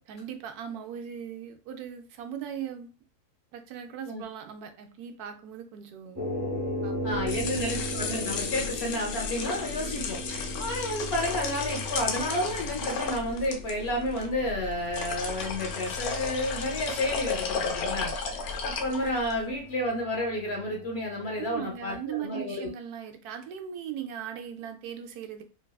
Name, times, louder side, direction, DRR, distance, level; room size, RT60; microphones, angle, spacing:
voice 1, 0.1-2.9 3.5-6.3 6.8-7.8 21.4-25.4, right 9 dB, 85° right, 5 dB, 1.1 m, -39 dB
sound 1, 6.2-21.6, equal, 20° right, 0.4 m, -38 dB
voice 2, 7.0-22.7, left 1 dB, 55° left, 0 dB, 0.8 m, -31 dB
sound 2, 7.1-19.4, left 5 dB, 75° left, 1.1 m, -34 dB
3.3 x 2.3 x 2.2 m, 0.34 s
omnidirectional pair, 1.6 m